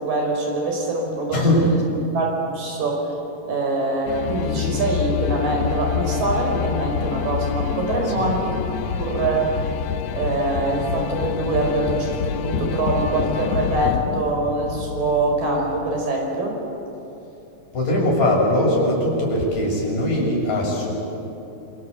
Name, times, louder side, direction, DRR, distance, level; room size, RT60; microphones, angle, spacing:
voice 1, 0.0-1.8 2.1-3.1 3.5-9.6 10.1-16.5, right 2 dB, 70° right, 1 dB, 6.7 m, -24 dB
voice 2, 1.3-1.6 8.1-8.3 17.7-20.9, left 1 dB, 65° left, -2 dB, 7.8 m, -20 dB
sound 1, 4.1-16.0, left 9 dB, 85° left, 1.4 m, -27 dB
27.5 x 25.0 x 8.2 m, 3.0 s
omnidirectional pair, 4.0 m